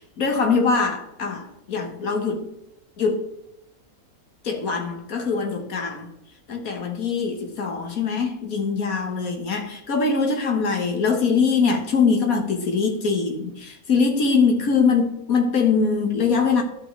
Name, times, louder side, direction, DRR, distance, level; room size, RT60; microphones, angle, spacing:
voice 1, 0.0-2.5 3.0-3.3 4.4-6.1 6.5-16.6, left 5 dB, 75° left, 1.9 m, -22 dB
12.5 x 5.7 x 3.3 m
omnidirectional pair, 1.5 m